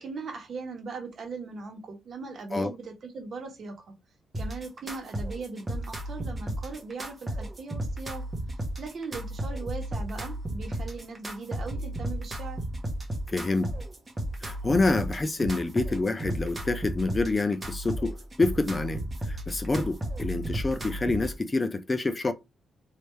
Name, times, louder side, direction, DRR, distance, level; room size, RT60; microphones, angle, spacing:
voice 1, 0.0-3.9 4.3-8.2 8.8-12.6, right 4 dB, 50° right, 1.2 m, -39 dB
sound 1, 4.3-21.3, right 1 dB, 15° right, 1.1 m, -34 dB
voice 2, 13.3-13.7 14.4-22.3, left 3 dB, 25° left, 0.4 m, -27 dB
3.3 x 2.7 x 3.2 m
cardioid pair, 120°, 0 cm